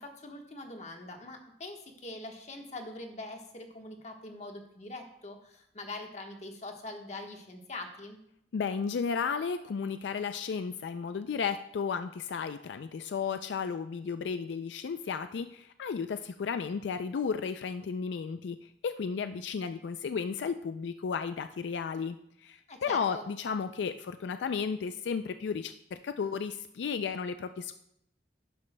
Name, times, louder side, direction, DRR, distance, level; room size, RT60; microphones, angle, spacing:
voice 1, 0.0-8.2 22.7-23.3, left 2 dB, 40° left, 3 dB, 1.2 m, -43 dB
voice 2, 8.5-22.2 22.4-27.7, left 6 dB, 80° left, 10 dB, 0.4 m, -33 dB
11.5 x 10.0 x 2.2 m, 0.76 s
head